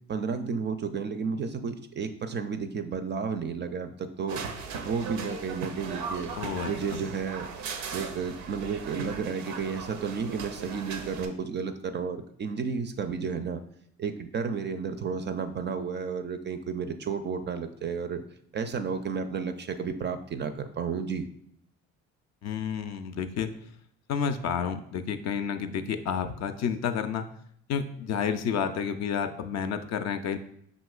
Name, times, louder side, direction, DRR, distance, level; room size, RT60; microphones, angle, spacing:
voice 1, 0.1-4.4 4.8-6.3 6.7-13.6 14.0-18.2 18.5-21.3, right 5 dB, 35° right, 9 dB, 0.4 m, -32 dB
sound 1, 4.3-11.3, right 5 dB, 80° right, 0.5 m, -38 dB
voice 2, 6.4-7.0 22.4-23.5 24.1-27.3 27.7-30.4, left 7 dB, 50° left, 8 dB, 0.4 m, -30 dB
5.3 x 2.9 x 2.3 m, 0.69 s
hypercardioid pair, 55°, 34 cm